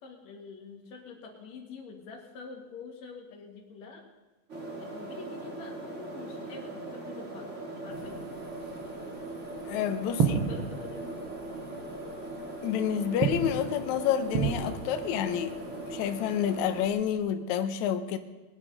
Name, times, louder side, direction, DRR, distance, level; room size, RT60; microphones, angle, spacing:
voice 1, 0.0-4.0 4.8-8.3 10.1-11.0, left 4 dB, 55° left, 1 dB, 2.9 m, -46 dB
sound 1, 4.5-16.9, right 2 dB, 25° right, 1.7 m, -40 dB
sound 2, 7.9-17.1, right 6 dB, 75° right, 1.1 m, -35 dB
voice 2, 9.7-10.4 12.6-15.6 15.9-18.2, left 9 dB, 70° left, 7 dB, 1.9 m, -29 dB
22.0 x 9.0 x 5.4 m, 1.2 s
omnidirectional pair, 4.1 m